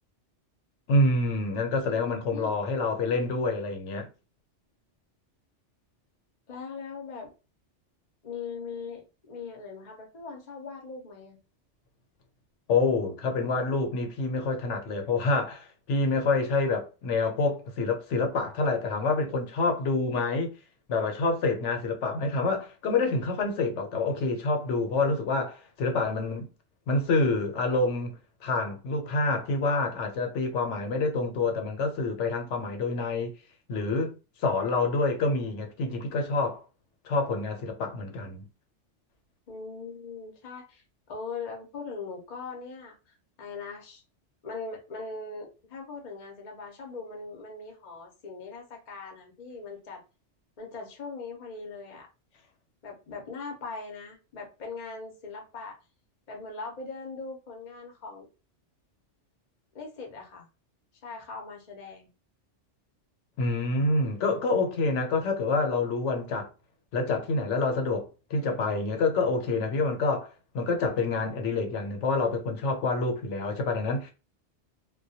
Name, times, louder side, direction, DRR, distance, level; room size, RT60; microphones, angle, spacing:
voice 1, 0.9-4.1 12.7-20.5 20.9-26.5 26.9-33.3 33.7-34.1 34.4-36.6 37.0-38.5 63.4-66.5 66.9-70.3 70.5-74.1, left 3 dB, 80° left, 1.0 m, -27 dB
voice 2, 1.9-2.5 6.5-7.3 8.2-11.4 39.5-40.8 41.1-44.0 44.4-50.0 50.6-52.1 52.8-55.8 56.3-58.3 59.7-60.5 61.0-62.1, left 4 dB, 45° left, 0.6 m, -40 dB
2.2 x 2.2 x 2.7 m
omnidirectional pair, 1.2 m